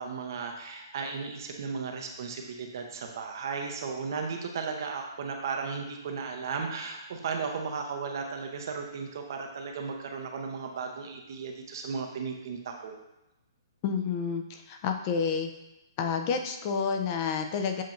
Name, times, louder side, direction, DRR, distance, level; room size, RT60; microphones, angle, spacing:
voice 1, 0.0-13.0, right 5 dB, 60° right, 3 dB, 0.7 m, -35 dB
voice 2, 13.8-15.5 16.0-17.8, left 6 dB, 35° left, 5 dB, 0.5 m, -29 dB
7.4 x 2.8 x 2.6 m, 0.98 s
hypercardioid pair, 130°, 2 cm